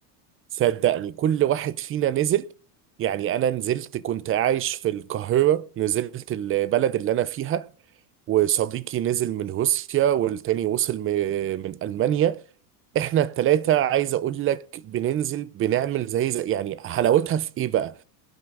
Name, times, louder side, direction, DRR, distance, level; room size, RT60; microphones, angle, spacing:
voice 1, 0.5-2.5 3.0-7.7 8.3-12.4 12.9-17.9, right 11 dB, 30° right, 0.5 m, -24 dB
21.0 x 11.5 x 2.6 m
supercardioid pair, 125°, 48 cm